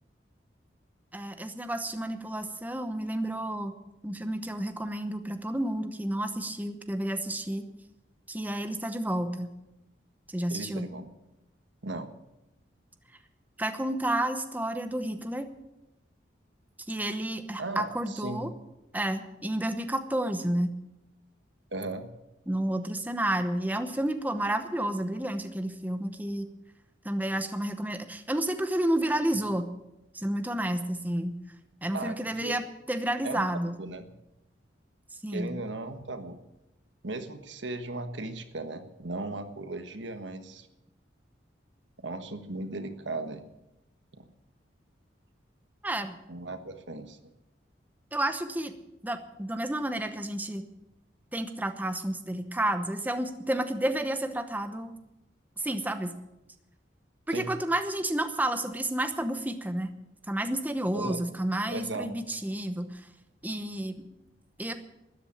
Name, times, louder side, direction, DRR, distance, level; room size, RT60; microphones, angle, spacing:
voice 1, 1.1-3.7 4.0-7.6 8.3-9.5 10.3-10.9 13.6-15.5 16.9-18.5 18.9-20.7 22.5-26.5 27.0-29.7 30.1-31.4 31.8-33.8 35.2-35.5 45.8-46.1 48.1-48.7 49.0-50.6 51.3-54.9 55.6-56.1 57.3-59.9 60.3-63.1 63.4-63.9 64.6-64.7, right 1 dB, 10° right, 8 dB, 0.9 m, -30 dB
voice 2, 10.5-11.1 11.8-12.1 17.6-18.4 21.7-22.1 31.9-32.6 33.2-33.5 33.8-34.1 35.3-36.4 37.0-40.7 42.0-43.5 44.1-44.3 46.3-47.2 57.3-57.5 60.9-61.2 61.7-62.1, right 2 dB, 80° right, 9 dB, 1.4 m, -37 dB
13.5 x 10.5 x 8.6 m, 0.91 s
head